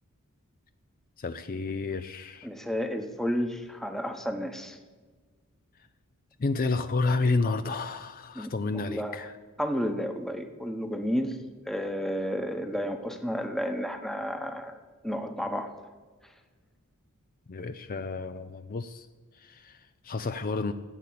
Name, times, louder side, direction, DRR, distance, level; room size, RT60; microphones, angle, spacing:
voice 1, 1.2-2.5 6.4-9.4 17.5-19.1 19.3-20.7, left 3 dB, 40° left, 10 dB, 0.5 m, -30 dB
voice 2, 2.4-4.8 8.4-9.2 9.6-11.4 11.7-14.8 15.0-15.7, equal, ahead, 6 dB, 1.1 m, -31 dB
15.0 x 8.4 x 8.5 m, 1.4 s
head